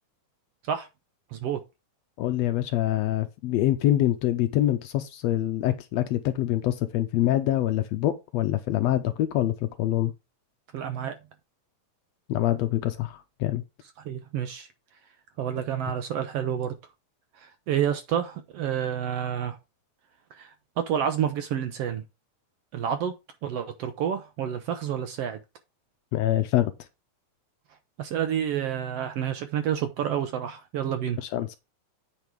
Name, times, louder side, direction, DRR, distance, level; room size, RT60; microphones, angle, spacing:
voice 1, 2.2-10.1 12.3-13.6 26.1-26.7 31.2-31.6, left 13 dB, 80° left, 1.6 m, -25 dB
voice 2, 10.7-11.2 14.0-14.7 15.4-16.8 17.4-19.6 20.3-22.0 22.7-23.1 23.4-25.4 28.0-31.2, right 9 dB, 70° right, 1.6 m, -29 dB
8.3 x 5.2 x 4.6 m
omnidirectional pair, 3.4 m